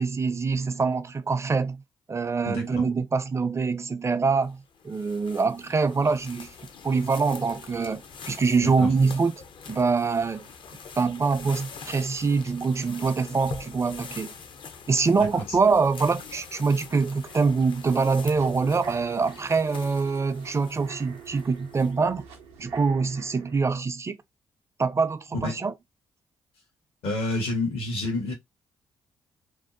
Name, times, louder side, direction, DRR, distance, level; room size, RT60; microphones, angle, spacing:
voice 1, 0.0-1.8 2.1-6.5 6.8-9.3 9.7-10.5 11.0-14.3 14.9-22.2 22.6-24.2 24.8-25.7, right 4 dB, 30° right, 0.4 m, -24 dB
sound 1, 4.4-22.2, left 5 dB, 55° left, 0.5 m, -44 dB
sound 2, 17.2-23.6, right 7 dB, 85° right, 0.5 m, -47 dB
voice 2, 27.0-28.3, left 2 dB, 75° left, 1.0 m, -29 dB
2.7 x 2.0 x 2.5 m
supercardioid pair, 50°, 10 cm